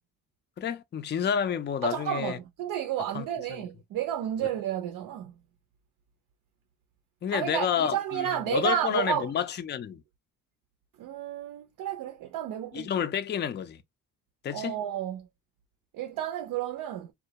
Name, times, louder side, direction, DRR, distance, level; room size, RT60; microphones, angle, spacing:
voice 1, 0.6-2.4 3.1-3.2 7.2-10.0 12.7-13.8 14.4-14.8, left 8 dB, 30° left, 0.4 m, -29 dB
voice 2, 1.8-5.3 7.3-9.3 11.0-12.9 14.5-15.3 15.9-17.1, right 10 dB, 75° right, 0.5 m, -31 dB
2.2 x 2.0 x 2.8 m
cardioid pair, 90°, 34 cm